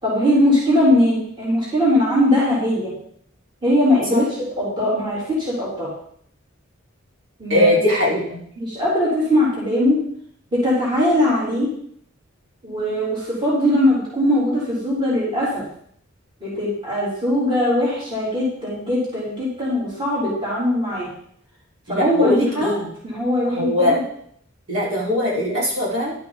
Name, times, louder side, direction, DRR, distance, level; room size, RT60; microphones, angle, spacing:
voice 1, 0.0-2.9 3.6-4.3 4.6-5.9 7.4-7.8 8.6-10.0 10.5-11.7 12.6-15.6 16.4-21.1 21.9-22.7 23.0-24.0, left 1 dB, 25° right, -8 dB, 3.8 m, -20 dB
voice 2, 7.5-8.4 21.9-22.9 23.5-24.0 24.7-26.1, left 1 dB, 65° right, -7 dB, 4.9 m, -20 dB
11.5 x 8.8 x 4.1 m, 0.65 s
head